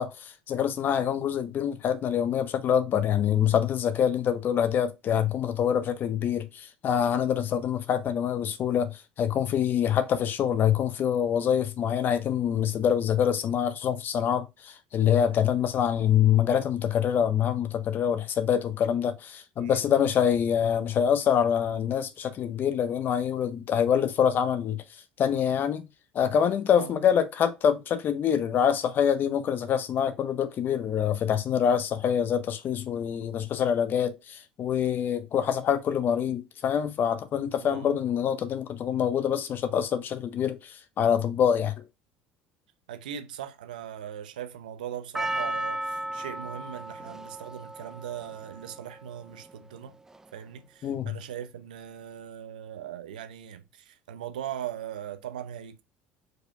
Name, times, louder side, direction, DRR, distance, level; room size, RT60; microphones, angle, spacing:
voice 1, 0.0-24.8 25.2-25.9 26.1-41.7 50.8-51.2, left 8 dB, 50° left, 0.9 m, -25 dB
voice 2, 19.6-20.1 26.8-27.1 37.6-38.0 42.9-50.0 50.3-55.8, right 10 dB, 85° right, 0.8 m, -39 dB
Percussion, 45.1-49.5 50.1-50.2, right 1 dB, 10° right, 0.4 m, -35 dB
4.8 x 4.7 x 2.3 m
hypercardioid pair, 70°, 4 cm